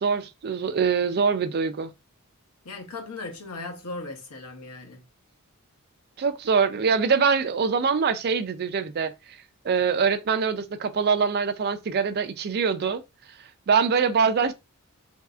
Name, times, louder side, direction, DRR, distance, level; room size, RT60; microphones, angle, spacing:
voice 1, 0.0-1.9 6.2-9.1 9.6-13.0 13.7-14.5, right 5 dB, 45° right, 0.4 m, -23 dB
voice 2, 2.6-5.0, left 3 dB, 90° left, 0.9 m, -37 dB
3.1 x 2.6 x 2.4 m
head